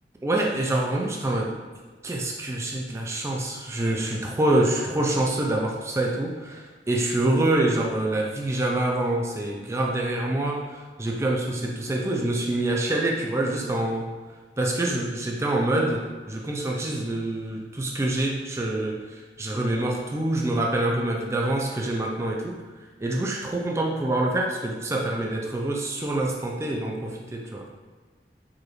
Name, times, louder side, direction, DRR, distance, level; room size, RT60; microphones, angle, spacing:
voice 1, 0.2-1.6 2.0-14.1 14.6-22.6 23.0-27.6, right 1 dB, 15° right, -1 dB, 0.3 m, -26 dB
4.8 x 2.5 x 3.0 m, 1.4 s
head